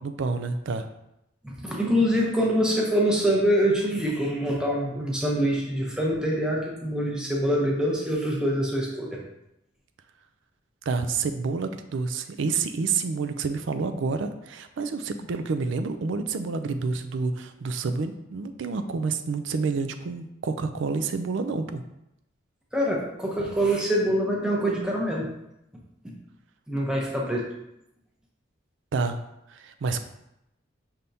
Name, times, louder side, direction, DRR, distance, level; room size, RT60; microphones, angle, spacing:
voice 1, 0.0-0.9 10.9-21.8 28.9-29.2 29.5-30.0, right 4 dB, 70° right, 9 dB, 0.4 m, -28 dB
voice 2, 1.4-9.2 22.7-25.3 26.0-26.1 26.7-27.5, equal, 5° right, -3 dB, 0.7 m, -25 dB
5.6 x 3.4 x 2.7 m, 0.85 s
head